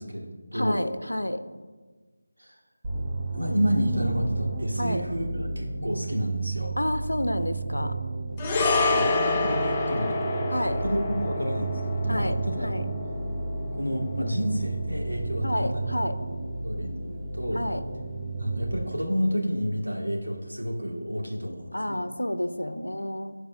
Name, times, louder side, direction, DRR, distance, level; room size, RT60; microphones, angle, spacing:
voice 1, 0.0-0.9 2.4-2.6 3.3-6.7 8.6-10.5 10.8-12.7 13.7-15.8 16.2-16.3 16.6-17.6 18.4-22.1, equal, 90° right, -1 dB, 2.1 m, -30 dB
voice 2, 0.5-1.4 4.8-5.0 6.8-8.0 10.5-10.8 12.1-12.9 15.4-16.2 17.5-17.8 21.7-23.4, left 1 dB, 80° left, 11 dB, 0.7 m, -30 dB
sound 1, 2.8-18.9, right 3 dB, 20° right, 0.8 m, -32 dB
sound 2, 8.4-16.9 17.1-17.3, left 3 dB, 15° left, 0.5 m, -29 dB
9.1 x 4.8 x 6.1 m, 1.4 s
figure-of-eight pair, 165°, 0 cm